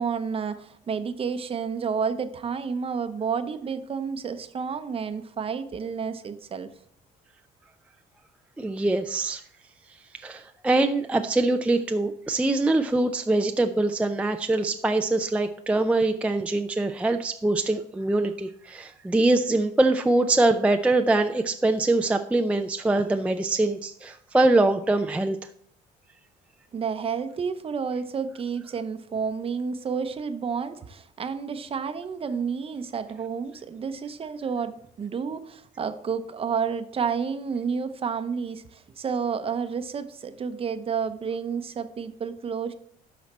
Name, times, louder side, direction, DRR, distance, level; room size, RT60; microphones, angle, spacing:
voice 1, 0.0-6.7 26.7-42.7, right 6 dB, 35° right, 10 dB, 0.7 m, -30 dB
voice 2, 8.6-9.4 10.1-25.4, right 2 dB, 5° right, 6 dB, 0.4 m, -23 dB
12.0 x 4.2 x 4.3 m, 0.65 s
cardioid pair, 110°, 17 cm